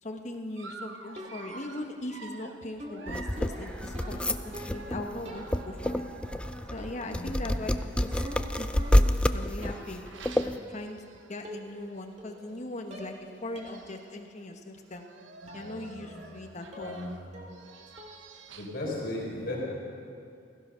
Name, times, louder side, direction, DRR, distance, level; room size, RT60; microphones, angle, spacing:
voice 1, 0.0-6.0 6.7-7.7 8.0-8.2 8.6-8.7 9.3-10.1 10.4-11.0 11.3-13.1 13.4-15.1 15.5-16.9, left 1 dB, 40° left, 4 dB, 1.2 m, -39 dB
Dog, 0.6-7.1 7.9-11.5 11.9-12.1 12.4-12.5 13.3-13.4 13.6-14.2 14.8-18.9, right 4 dB, 75° right, 0.9 m, -49 dB
sound 1, 1.2-1.7 2.8-5.0 5.3-5.9 6.8-7.2 7.4-9.2 9.6-10.0 10.9-11.0 11.4-11.9 12.2-12.6 12.9-13.2 13.6-13.8 14.2-14.3 15.5-15.7 16.1-16.4 16.7-17.1 17.3-17.7 18.0-18.3, right 1 dB, 35° right, 2.1 m, -45 dB
sound 2, 3.1-10.6, left 1 dB, 5° left, 0.3 m, -28 dB
voice 2, 15.6-16.2 16.8-17.1 18.6-19.6, left 1 dB, 55° left, -4 dB, 4.1 m, -36 dB
16.5 x 14.5 x 5.7 m, 2.4 s
head